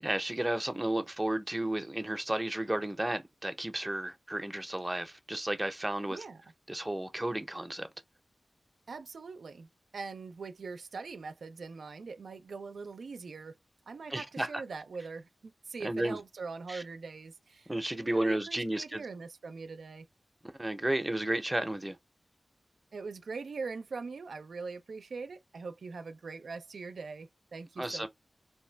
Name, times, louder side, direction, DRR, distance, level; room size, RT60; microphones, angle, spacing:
voice 1, 0.0-6.2 6.7-7.9 14.1-14.6 15.8-16.2 16.7-16.8 17.7-19.0 20.6-22.0 27.8-28.1, right 1 dB, 15° right, 0.6 m, -33 dB
voice 2, 6.1-6.4 8.9-9.7 9.9-13.6 13.9-20.1 22.9-28.1, right 4 dB, 90° right, 0.3 m, -42 dB
2.7 x 2.1 x 3.2 m
wide cardioid pair, 65°, 0 cm